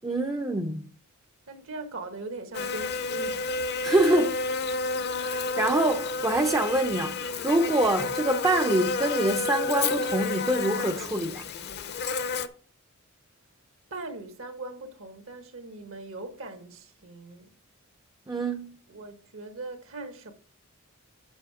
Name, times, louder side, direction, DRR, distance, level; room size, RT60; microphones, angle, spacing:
voice 1, 0.0-0.8 3.8-4.4 5.2-11.5 18.3-18.8, right 1 dB, 15° right, 0.5 m, -25 dB
voice 2, 1.5-3.6 13.9-17.4 18.9-20.3, right 3 dB, 65° right, 1.2 m, -40 dB
Buzz, 2.5-12.5, left 3 dB, 50° left, 0.7 m, -30 dB
7.1 x 6.2 x 4.8 m
head